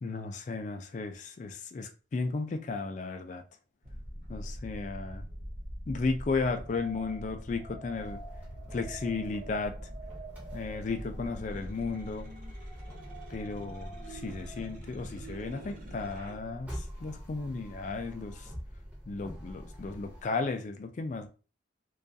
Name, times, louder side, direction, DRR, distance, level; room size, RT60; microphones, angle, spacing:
voice 1, 0.0-3.4 4.3-5.2 5.9-8.2 8.7-9.7 10.5-12.3 13.3-18.5 19.1-21.3, left 3 dB, 40° left, 0.3 m, -34 dB
sound 1, 3.8-16.4, equal, 45° right, 0.7 m, -44 dB
sound 2, 7.9-20.2, equal, 10° right, 0.7 m, -45 dB
2.3 x 2.3 x 2.6 m
head